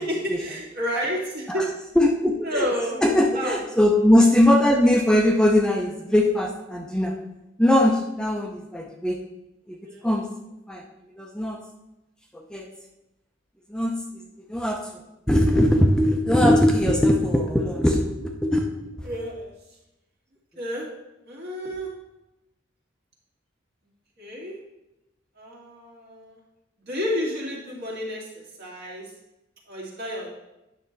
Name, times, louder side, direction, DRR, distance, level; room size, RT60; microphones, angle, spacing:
voice 1, 0.0-1.7 2.4-3.0 3.3-3.6 9.8-10.1 19.0-19.5 20.6-20.9 21.3-21.9 24.2-24.6 25.4-26.4 26.9-29.1 29.7-30.4, equal, 55° right, -3 dB, 2.2 m, -30 dB
voice 2, 2.0-2.7 3.0-7.1 7.6-9.2 9.7-9.8 10.0-10.2 10.7-10.8 11.2-11.6 12.3-12.7 13.7-14.2 14.5-15.0 15.3-18.7 19.0-19.1, left 1 dB, 5° left, 1 dB, 0.6 m, -20 dB
8.9 x 6.1 x 3.9 m, 0.94 s
head